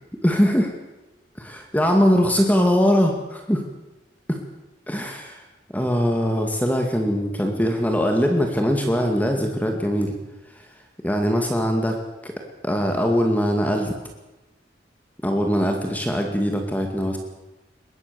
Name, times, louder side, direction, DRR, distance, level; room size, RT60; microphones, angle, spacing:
voice 1, 0.2-0.7 1.4-3.6 4.3-4.4 4.9-5.4 5.7-10.2 11.0-12.0 12.2-12.3 12.6-13.9 15.2-17.2, equal, 10° left, 3 dB, 2.2 m, -21 dB
22.5 x 18.5 x 7.0 m, 1.1 s
head